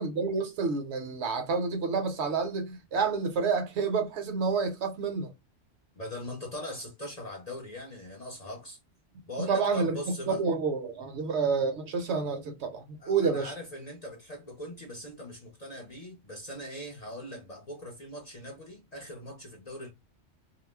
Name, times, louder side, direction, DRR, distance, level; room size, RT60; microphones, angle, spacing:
voice 1, 0.0-5.3 9.4-10.0 10.3-13.5, right 5 dB, 70° right, 0.9 m, -29 dB
voice 2, 6.0-8.8 9.3-10.4 13.0-19.9, left 1 dB, 45° left, 0.6 m, -41 dB
2.3 x 2.0 x 3.2 m
omnidirectional pair, 1.3 m